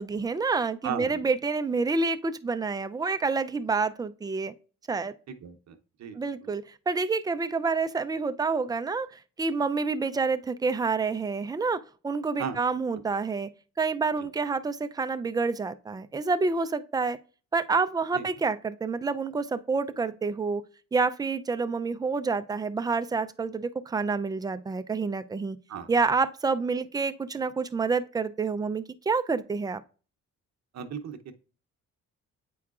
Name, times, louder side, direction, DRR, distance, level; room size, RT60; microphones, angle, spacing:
voice 1, 0.0-4.5 4.9-5.1 6.2-13.5 13.8-17.2 17.5-20.6 20.9-25.6 25.9-29.8, right 4 dB, 15° right, 0.4 m, -28 dB
voice 2, 0.8-1.2 5.3-6.5 12.4-12.6 18.1-18.3 25.7-25.9 30.7-31.3, right 7 dB, 60° right, 0.8 m, -36 dB
8.4 x 4.6 x 2.4 m
cardioid pair, 90°, 30 cm